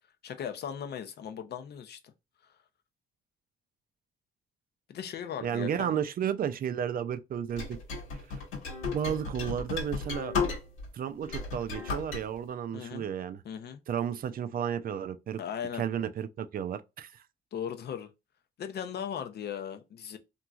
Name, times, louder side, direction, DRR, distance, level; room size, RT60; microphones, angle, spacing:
voice 1, 0.2-2.1 4.9-5.9 12.7-13.1 13.4-13.8 15.4-15.8 17.5-18.1 18.6-20.2, left 8 dB, 55° left, 0.5 m, -38 dB
voice 2, 5.4-7.8 8.9-10.3 10.9-13.4 13.9-15.4 15.7-17.2, right 8 dB, 50° right, 0.4 m, -32 dB
sound 1, 7.6-10.9 11.2-12.2, left 4 dB, 90° left, 1.3 m, -34 dB
3.0 x 2.6 x 2.3 m
cardioid pair, 90°, 20 cm